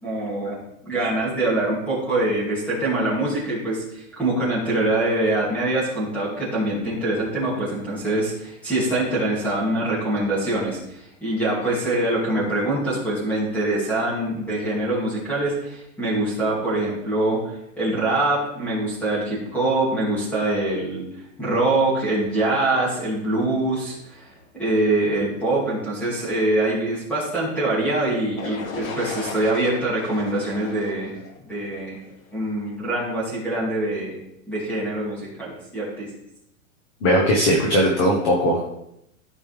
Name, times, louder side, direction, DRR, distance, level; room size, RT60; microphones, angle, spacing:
voice 1, 0.0-21.0 21.4-31.1 31.4-32.0 32.3-34.2 34.5-36.1, right 2 dB, 5° left, -7 dB, 2.5 m, -24 dB
sound 1, 28.4-32.3, left 4 dB, 70° left, 1.7 m, -36 dB
voice 2, 37.0-38.8, equal, 20° left, 0 dB, 0.8 m, -19 dB
14.0 x 5.3 x 3.4 m, 0.82 s
supercardioid pair, 175°, 42 cm